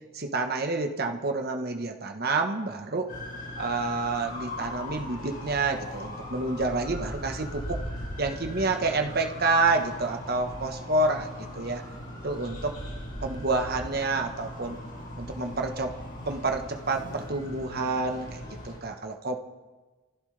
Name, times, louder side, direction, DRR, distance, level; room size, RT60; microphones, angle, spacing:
voice 1, 0.1-3.1 3.6-7.8 8.2-11.3 11.5-11.8 12.2-12.7 13.2-14.8 15.2-15.9 16.3-19.4, right 3 dB, 45° right, 4 dB, 1.2 m, -28 dB
sound 1, 3.1-18.8, left 1 dB, 40° left, 5.4 m, -39 dB
26.0 x 15.0 x 3.4 m, 1.3 s
head